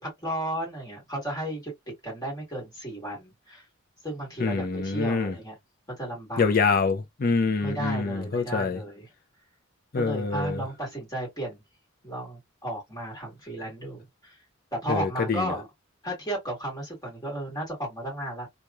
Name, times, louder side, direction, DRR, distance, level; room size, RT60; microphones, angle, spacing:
voice 1, 0.0-1.7 2.0-3.7 4.0-5.6 6.0-6.5 7.6-9.1 10.0-11.6 12.0-14.4 14.7-15.7 16.0-18.5, right 1 dB, 20° left, 1.7 m, -34 dB
voice 2, 4.4-5.3 6.4-8.8 9.9-10.6 14.9-15.5, left 4 dB, 45° left, 0.5 m, -25 dB
3.0 x 2.4 x 2.3 m
head